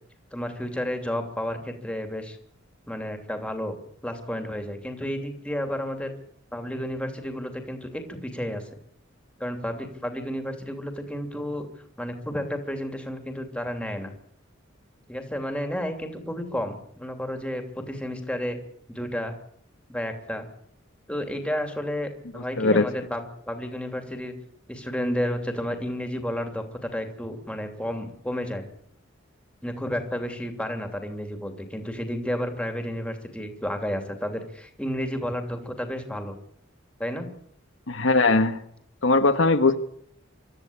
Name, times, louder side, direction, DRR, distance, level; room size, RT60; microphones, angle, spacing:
voice 1, 0.3-2.4 2.9-3.7 4.0-6.1 6.5-8.6 9.4-11.7 12.0-14.1 15.1-18.6 18.9-19.3 19.9-20.5 21.1-24.3 24.7-28.7 29.6-36.3 37.0-37.3, equal, 5° left, 5 dB, 2.8 m, -31 dB
voice 2, 22.3-22.9 37.9-38.6 39.0-39.8, left 3 dB, 75° left, 8 dB, 1.3 m, -20 dB
25.0 x 13.5 x 8.7 m, 0.68 s
head